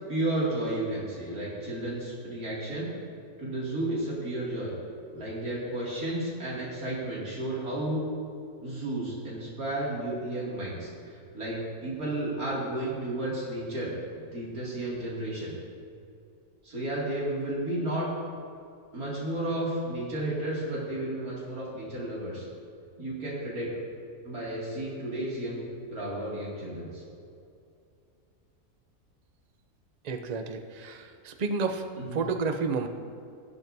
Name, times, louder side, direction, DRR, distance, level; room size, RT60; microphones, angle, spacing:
voice 1, 0.1-2.9 3.4-4.7 5.1-8.0 8.6-15.5 16.6-18.1 18.9-22.4 23.0-23.7 24.2-27.0 32.1-32.2, right 1 dB, 85° right, -7 dB, 3.0 m, -32 dB
voice 2, 30.0-32.9, right 4 dB, 45° right, 5 dB, 0.5 m, -31 dB
15.5 x 12.0 x 2.7 m, 2.5 s
omnidirectional pair, 1.6 m